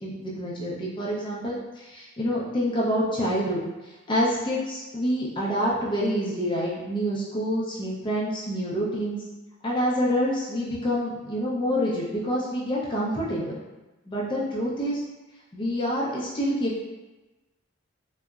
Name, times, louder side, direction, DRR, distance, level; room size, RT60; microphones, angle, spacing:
voice 1, 0.0-3.6 4.1-9.2 9.6-13.6 14.1-15.0 15.5-16.8, equal, 25° left, -5 dB, 0.4 m, -27 dB
3.6 x 2.0 x 2.3 m, 1.1 s
head